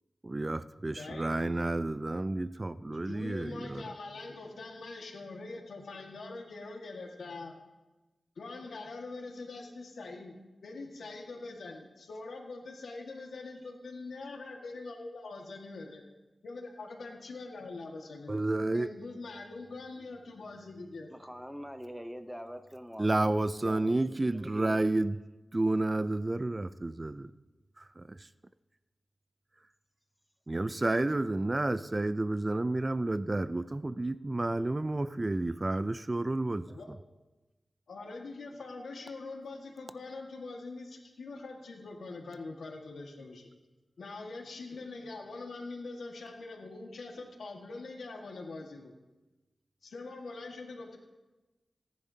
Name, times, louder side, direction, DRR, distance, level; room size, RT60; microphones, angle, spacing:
voice 1, 0.2-3.8 18.3-18.9 23.0-25.2 25.5-27.3 27.8-28.3 30.5-36.7, right 2 dB, 30° right, 0.4 m, -30 dB
voice 2, 1.0-1.5 3.0-7.5 8.4-10.4 10.6-16.0 16.4-18.4 18.7-21.1 36.7-36.9 37.9-43.5 44.0-48.9 49.8-51.0, left 3 dB, 90° left, 1.7 m, -43 dB
voice 3, 21.1-24.8, equal, 5° right, 0.7 m, -44 dB
18.0 x 10.5 x 2.8 m
wide cardioid pair, 70°, 0 cm